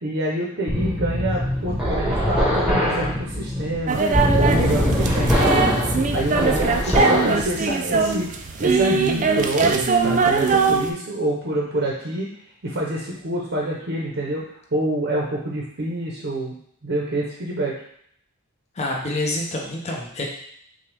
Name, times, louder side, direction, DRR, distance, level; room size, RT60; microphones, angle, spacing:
voice 1, 0.0-4.0 4.4-5.7 6.1-8.3 8.6-12.3 12.6-14.4 14.7-16.6 16.8-17.7, right 1 dB, 50° right, -3 dB, 0.8 m, -26 dB
sound 1, 0.7-7.4, equal, 5° right, 0.9 m, -22 dB
sound 2, 3.9-10.9, right 4 dB, 35° right, 0.3 m, -21 dB
voice 2, 6.7-7.1 18.8-20.2, left 2 dB, 30° left, -1 dB, 0.6 m, -28 dB
6.0 x 2.3 x 3.3 m, 0.66 s
head